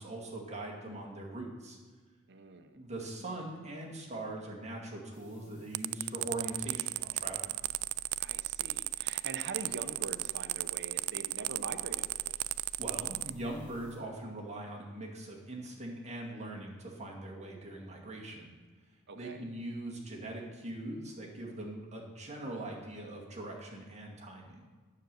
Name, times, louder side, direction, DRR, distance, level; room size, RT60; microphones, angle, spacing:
voice 1, 0.0-1.8 2.7-7.6 12.8-18.5 19.1-24.7, right 1 dB, 30° right, -1 dB, 2.1 m, -41 dB
voice 2, 2.3-2.8 8.2-12.3 19.1-19.4, right 4 dB, 55° right, 8 dB, 0.8 m, -44 dB
sound 1, 5.1-14.0, equal, 45° left, 3.7 m, -57 dB
sound 2, 5.7-13.3, right 20 dB, 90° right, 0.3 m, -34 dB
9.6 x 7.8 x 6.8 m, 1.4 s
head